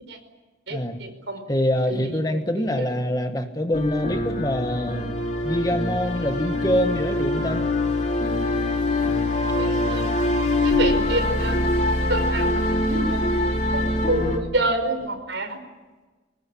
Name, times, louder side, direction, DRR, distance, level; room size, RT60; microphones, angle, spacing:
voice 1, 0.7-1.4 1.9-2.8 9.6-10.1 10.6-11.6 12.1-12.5 12.9-13.2 13.7-13.8 14.1-15.6, right 1 dB, 70° right, 7 dB, 5.0 m, -28 dB
voice 2, 1.5-5.0 5.4-7.7, equal, 20° left, 7 dB, 1.6 m, -25 dB
sound 1, 3.7-14.4, left 1 dB, 40° left, 3.6 m, -24 dB
24.0 x 20.5 x 10.0 m, 1.3 s
head